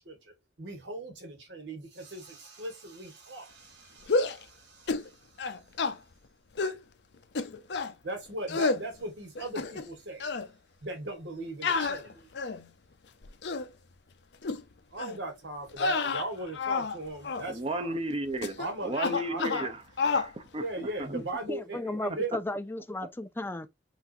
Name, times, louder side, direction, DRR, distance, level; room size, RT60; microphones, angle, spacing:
voice 1, 0.0-5.6 8.0-10.3 10.8-12.3 14.9-18.0 18.6-18.9 19.3-19.5 20.6-22.3, right 2 dB, 90° right, 1.8 m, -39 dB
sound 1, 4.0-4.4 4.9-5.1 5.4-5.9 6.6-6.8 7.3-7.9 8.5-8.8 9.3-9.9 10.2-10.5 11.6-12.7 13.2-13.7 14.4-14.6 15.0-15.2 15.7-17.0 17.2-17.5 18.4-18.7 18.9-19.7 20.0-20.3, left 4 dB, 70° left, 0.6 m, -29 dB
voice 2, 17.5-19.8 20.1-21.2, right 1 dB, 30° right, 0.7 m, -34 dB
voice 3, 21.5-23.7, left 1 dB, 10° left, 0.4 m, -35 dB
5.8 x 2.7 x 2.7 m
head